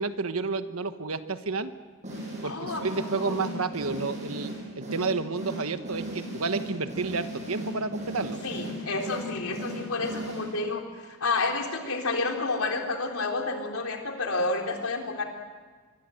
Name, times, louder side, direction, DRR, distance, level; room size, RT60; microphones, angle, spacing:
voice 1, 0.0-1.7 2.4-8.4, right 4 dB, 80° right, 10 dB, 1.3 m, -30 dB
sound 1, 2.0-10.8, equal, 35° right, 7.9 m, -37 dB
voice 2, 2.4-3.5 8.4-15.2, left 3 dB, 85° left, 2 dB, 3.7 m, -30 dB
25.5 x 23.5 x 7.9 m, 1.5 s
head